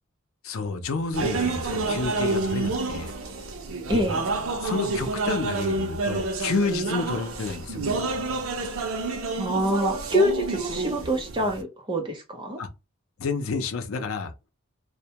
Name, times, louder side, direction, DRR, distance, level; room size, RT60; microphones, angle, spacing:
voice 1, 0.4-3.1 3.9-4.0 4.6-8.1 12.6-12.7 13.2-14.3, left 4 dB, 80° left, 0.5 m, -30 dB
sound 1, 1.1-11.6, right 3 dB, 80° right, 0.5 m, -29 dB
voice 2, 3.9-4.2 9.4-12.6, equal, 20° right, 0.5 m, -25 dB
2.1 x 2.1 x 2.8 m
head